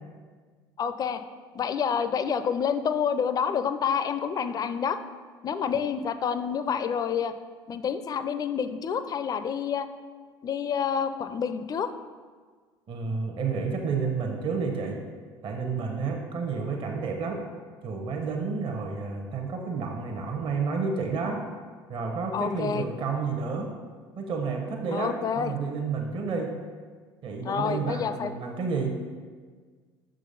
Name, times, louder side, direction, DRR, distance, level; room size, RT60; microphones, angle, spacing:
voice 1, 0.8-1.2 1.5-5.0 5.4-7.3 7.7-9.9 10.4-11.9 22.3-22.9 24.9-25.5 27.4-28.3, left 7 dB, 30° left, 11 dB, 0.4 m, -28 dB
voice 2, 12.9-15.0 15.4-17.4 17.8-21.4 21.9-23.7 24.1-26.6 27.2-28.9, right 4 dB, 45° right, 2 dB, 0.9 m, -30 dB
6.2 x 3.9 x 5.1 m, 1.5 s
figure-of-eight pair, 60°, 12 cm